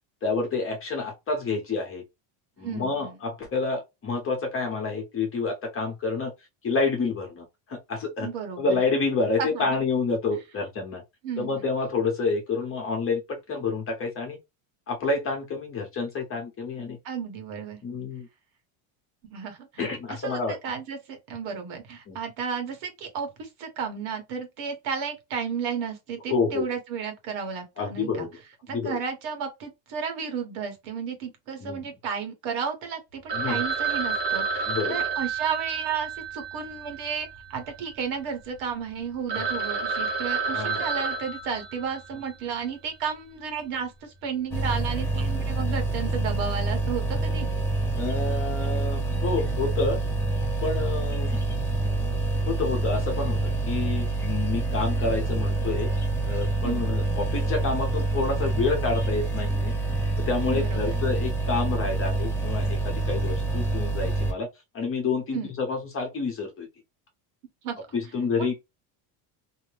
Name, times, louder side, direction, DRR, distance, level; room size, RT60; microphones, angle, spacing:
voice 1, 0.2-2.0 2.6-6.3 6.6-8.3 8.6-11.0 11.4-14.4 14.9-17.0 17.8-18.3 19.8-20.6 22.1-22.2 26.3-26.6 27.8-28.3 28.7-29.0 31.6-31.9 33.3-33.6 34.7-35.0 39.3-39.5 40.5-40.8 47.9-50.0 50.6-51.4 52.5-55.9 56.2-59.7 60.3-64.5 64.7-66.7 67.9-68.5, left 4 dB, 25° left, 0.9 m, -28 dB
voice 2, 2.6-3.2 8.2-8.8 9.4-9.8 11.2-11.6 17.0-17.8 19.3-28.3 28.6-47.5 56.6-56.8 60.5-60.9 65.3-65.5 67.6-67.9, right 6 dB, 75° right, 1.2 m, -33 dB
Telephone, 33.3-37.6 37.9-38.0 38.6-38.7 39.0-39.1 39.3-42.3, right 5 dB, 55° right, 0.9 m, -30 dB
sound 1, 44.5-64.3, right 2 dB, 5° left, 0.4 m, -27 dB
2.7 x 2.0 x 3.2 m
cardioid pair, 155°, 48 cm